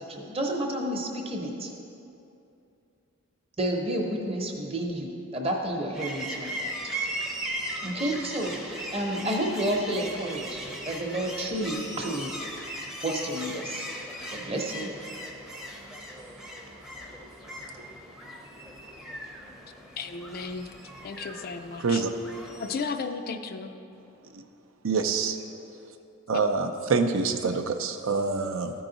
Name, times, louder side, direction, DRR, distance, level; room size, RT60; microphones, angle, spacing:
voice 1, 0.0-1.7 3.6-6.7 7.8-12.3 13.0-13.9 14.3-14.9, right 1 dB, 30° right, 0.8 m, -30 dB
sound 1, 5.9-22.8, right 1 dB, ahead, 0.6 m, -38 dB
voice 2, 20.0-20.7 21.0-22.0 22.6-23.7, left 4 dB, 45° left, 0.4 m, -34 dB
voice 3, 21.8-22.1 24.8-25.4 26.3-28.7, right 4 dB, 70° right, 0.5 m, -26 dB
13.5 x 4.7 x 3.9 m
head